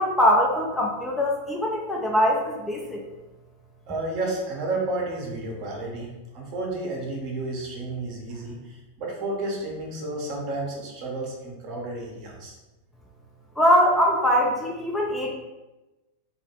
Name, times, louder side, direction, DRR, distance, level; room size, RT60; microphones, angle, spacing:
voice 1, 0.0-3.0 13.6-15.3, equal, 10° left, -2 dB, 0.3 m, -22 dB
voice 2, 3.9-12.6, right 2 dB, 40° right, -1 dB, 0.7 m, -31 dB
2.2 x 2.0 x 3.0 m, 1.1 s
figure-of-eight pair, 90°, 0 cm